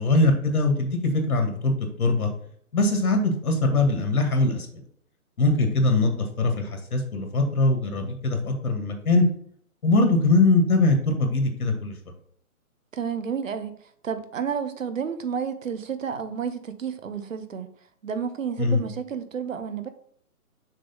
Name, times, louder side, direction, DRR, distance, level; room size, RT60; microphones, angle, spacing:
voice 1, 0.0-1.7 2.0-2.3 2.7-4.8 5.4-9.3 9.8-11.9 18.6-18.8, left 2 dB, 75° left, 2.2 m, -22 dB
voice 2, 12.9-13.8 14.0-17.7 18.0-19.9, right 7 dB, 60° right, 0.9 m, -31 dB
6.5 x 3.6 x 5.4 m
hypercardioid pair, 175°, 44 cm